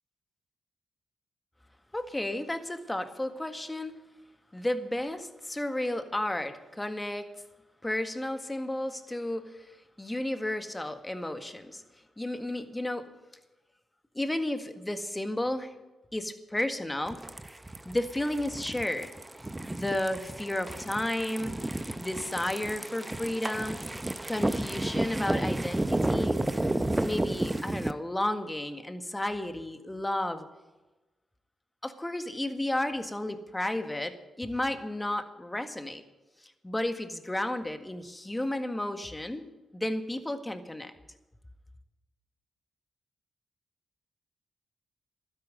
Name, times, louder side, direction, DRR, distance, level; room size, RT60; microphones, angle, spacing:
voice 1, 1.9-3.9 4.5-7.3 7.8-11.8 12.2-13.1 14.1-15.7 16.1-17.2 17.9-19.1 19.7-21.5 22.0-23.8 24.3-26.4 27.0-30.5 31.8-36.0 36.6-39.4 39.7-40.9, left 1 dB, 15° left, 8 dB, 1.7 m, -32 dB
sound 1, 17.1-27.9, right 1 dB, 15° right, 0.8 m, -32 dB
12.5 x 10.5 x 7.8 m, 1.1 s
supercardioid pair, 50°, 0 cm